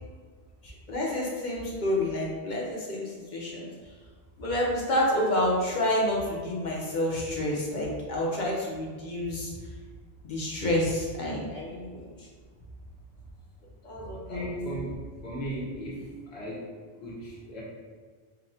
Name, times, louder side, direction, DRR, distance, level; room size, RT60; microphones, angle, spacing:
voice 1, 0.6-3.7 4.4-9.5 10.2-12.3 13.8-14.4, left 1 dB, 50° left, -3 dB, 0.8 m, -29 dB
voice 2, 14.3-14.9 15.2-16.0 16.3-16.7 17.0-17.6, equal, 75° left, -7 dB, 1.4 m, -35 dB
5.4 x 2.2 x 2.7 m, 1.6 s
omnidirectional pair, 1.1 m